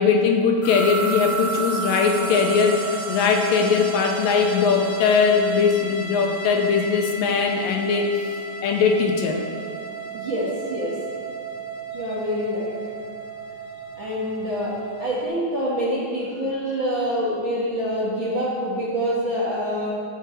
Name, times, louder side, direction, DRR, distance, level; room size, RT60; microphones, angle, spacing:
voice 1, 0.0-8.1 8.6-9.4, left 5 dB, 80° left, 2 dB, 2.4 m, -20 dB
sound 1, 0.6-15.3, right 3 dB, 50° left, 1.2 m, -33 dB
voice 2, 10.1-11.0 11.9-12.7 14.0-19.9, equal, 45° right, -7 dB, 1.7 m, -26 dB
12.5 x 4.6 x 7.8 m, 2.2 s
omnidirectional pair, 4.2 m